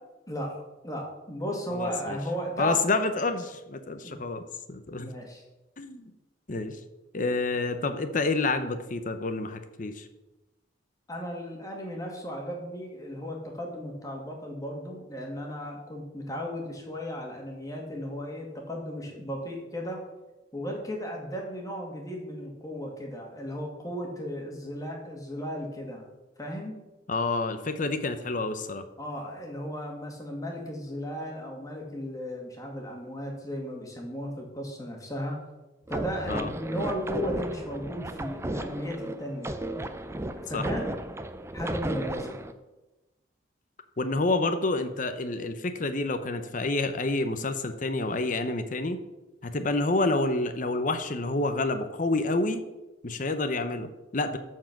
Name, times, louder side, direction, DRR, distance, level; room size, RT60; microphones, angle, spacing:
voice 1, 0.8-2.8 4.0-4.2 5.0-5.4 11.1-20.0 20.5-26.1 26.4-26.8 29.0-35.4 35.9-39.6 40.5-40.8 41.5-42.4, equal, 20° left, 0 dB, 2.0 m, -35 dB
voice 2, 1.7-2.2 2.6-5.1 5.8-6.1 6.5-6.8 7.1-10.1 27.1-28.8 36.3-36.5 40.5-40.6 44.0-49.0 49.4-52.6 53.0-54.4, left 2 dB, 45° left, 9 dB, 0.7 m, -28 dB
sound 1, 35.9-42.5, right 1 dB, 15° right, 0.5 m, -34 dB
13.5 x 4.7 x 5.9 m, 1.0 s
head